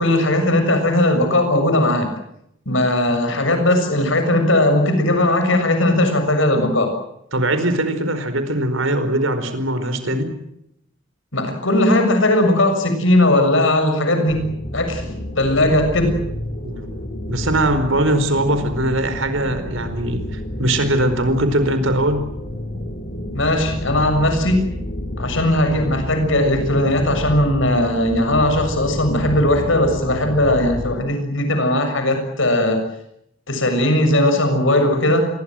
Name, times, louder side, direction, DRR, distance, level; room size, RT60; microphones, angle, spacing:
voice 1, 0.0-2.1 2.7-6.9 11.3-14.5 14.7-15.1 15.4-16.2 23.3-24.7 25.2-32.8 33.5-35.3, left 1 dB, 70° left, 7 dB, 6.9 m, -18 dB
voice 2, 7.3-10.3 16.6-17.0 17.3-22.3, right 1 dB, 75° right, 10 dB, 4.6 m, -21 dB
sound 1, 14.3-31.0, left 1 dB, 50° left, 4.1 m, -30 dB
27.0 x 22.0 x 7.8 m, 0.77 s
head